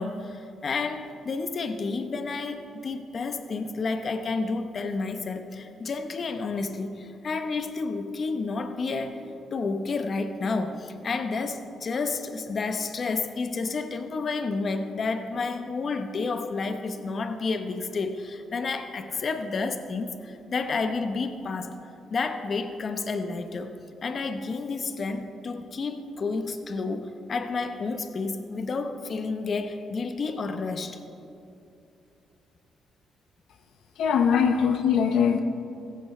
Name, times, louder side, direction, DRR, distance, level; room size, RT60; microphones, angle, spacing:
voice 1, 0.0-9.2 9.5-21.7 22.1-23.7 24.0-31.0 34.3-34.4, left 4 dB, 45° left, 7 dB, 0.9 m, -30 dB
voice 2, 34.0-35.4, left 7 dB, 75° left, 6 dB, 0.6 m, -21 dB
16.0 x 14.5 x 3.3 m, 2.7 s
cardioid pair, 90°, 0 cm